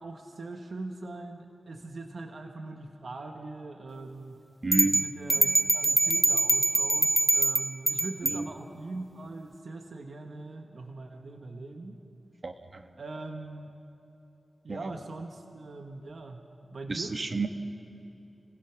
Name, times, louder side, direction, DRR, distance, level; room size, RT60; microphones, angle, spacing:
voice 1, 0.0-4.4 4.8-12.0 12.9-13.7 14.6-17.2, right 2 dB, 70° right, 4 dB, 1.4 m, -41 dB
voice 2, 4.6-5.0 8.2-8.5 12.4-12.9 14.7-14.9 16.9-17.5, right 3 dB, 50° right, 6 dB, 1.5 m, -31 dB
sound 1, 4.7-8.4, right 2 dB, 30° right, 0.6 m, -24 dB
30.0 x 20.0 x 6.0 m, 3.0 s
cardioid pair, 55°, 0 cm